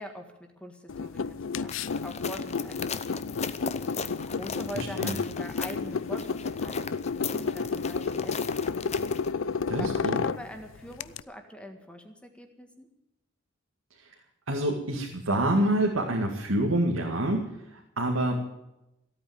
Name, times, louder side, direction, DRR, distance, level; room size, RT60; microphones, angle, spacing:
voice 1, 0.0-8.7 9.8-12.9, equal, 5° left, 5 dB, 1.6 m, -44 dB
sound 1, 0.9-11.2, left 5 dB, 70° left, 0.5 m, -31 dB
sound 2, 1.7-9.3, left 6 dB, 30° left, 0.8 m, -38 dB
voice 2, 4.7-5.1 9.7-10.2 14.0-14.1 14.5-18.4, right 1 dB, 90° right, 0 dB, 2.2 m, -27 dB
16.0 x 8.9 x 9.3 m, 0.90 s
head